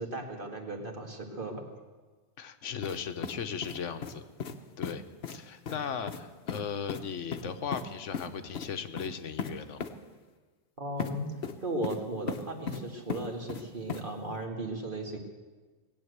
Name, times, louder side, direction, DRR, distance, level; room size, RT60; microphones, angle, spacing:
voice 1, 0.0-1.6 10.8-11.3 11.6-15.2, right 1 dB, 45° right, 2 dB, 2.1 m, -36 dB
voice 2, 2.4-4.2 4.8-5.0 5.3-9.8, left 7 dB, 85° left, 9 dB, 1.2 m, -37 dB
sound 1, 2.8-3.0 3.2-4.1 4.4-4.6 4.8-4.9 5.2-5.4 5.7-5.8 6.1-6.2 6.5-6.6 6.9-7.0 7.3-7.8 8.1-8.3 8.5-8.7 9.0-9.1 9.4-9.5 9.8-9.9 11.0-11.1 11.4-12.0 12.3-12.8 13.1-13.6 13.9-14.0, left 6 dB, 65° left, 1.1 m, -36 dB
19.0 x 8.6 x 8.0 m, 1.4 s
omnidirectional pair, 1.2 m